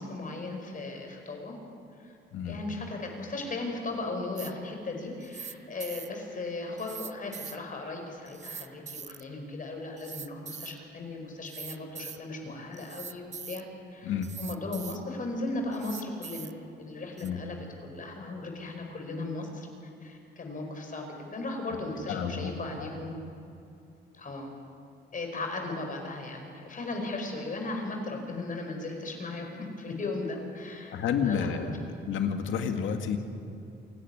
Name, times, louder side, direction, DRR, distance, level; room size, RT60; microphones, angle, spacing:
voice 1, 0.0-1.6 2.0-2.2 2.4-13.7 13.9-16.5 16.8-19.7 20.0-23.2 24.1-24.5 25.1-30.9 31.2-31.5, left 2 dB, 40° left, 3 dB, 4.9 m, -37 dB
sound 1, 4.4-4.5 5.2-5.5 5.8-6.1 6.8-7.6 8.3-9.2 10.0-10.8 11.4-12.2 12.7-13.6 14.2-15.0 15.7-16.5 17.2-17.3, right 6 dB, 35° right, 0.8 m, -42 dB
voice 2, 22.1-22.9 30.9-31.7 32.1-33.2, left 7 dB, 80° left, 6 dB, 2.1 m, -30 dB
28.0 x 11.0 x 9.9 m, 2.7 s
cardioid pair, 90°, 20 cm